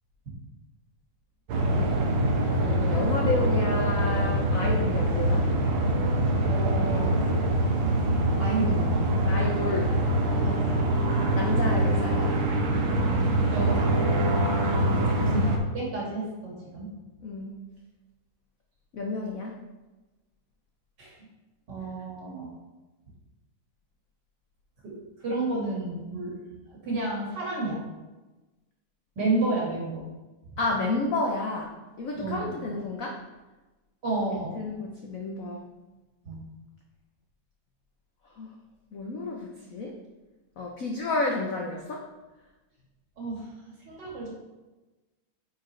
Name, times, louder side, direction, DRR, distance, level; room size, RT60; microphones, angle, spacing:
sound 1, 1.5-15.6, right 1 dB, 70° right, 1.7 m, -24 dB
voice 1, 2.5-5.5 9.3-10.0 11.3-12.3 14.9-15.3 17.2-17.5 18.9-19.6 30.6-33.2 34.5-35.7 38.4-38.5 38.9-40.0 40.6-42.0, left 2 dB, 70° left, 0 dB, 0.8 m, -31 dB
voice 2, 6.5-7.1 8.4-8.9 10.4-10.8 13.5-13.9 15.3-15.4 15.7-16.9 21.0-21.1 21.7-22.5 24.8-24.9 25.2-26.4 26.8-27.8 29.2-30.0 32.2-32.6 34.0-34.6 36.2-36.4 43.2-43.5 43.8-44.3, right 2 dB, 55° right, -4 dB, 2.4 m, -31 dB
8.7 x 4.4 x 3.2 m, 1.1 s
omnidirectional pair, 2.4 m